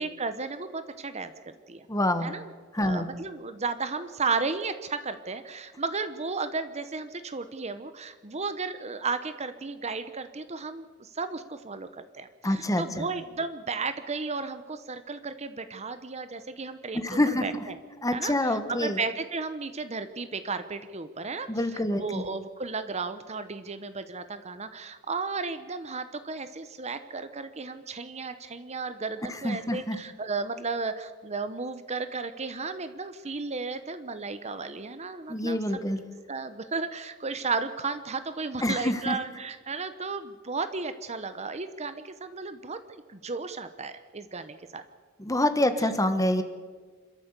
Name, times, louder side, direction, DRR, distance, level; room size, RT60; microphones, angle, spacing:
voice 1, 0.0-1.9 2.2-2.5 2.7-17.8 18.1-35.6 36.3-44.8 45.8-45.9, right 4 dB, 30° right, 10 dB, 0.9 m, -34 dB
voice 2, 1.9-2.3 2.7-3.1 12.4-13.0 16.9-17.6 18.0-19.0 21.5-22.2 29.3-30.0 35.3-36.0 38.6-39.2 45.2-46.4, left 1 dB, 15° left, 10 dB, 1.4 m, -26 dB
27.5 x 13.0 x 8.2 m, 1.5 s
head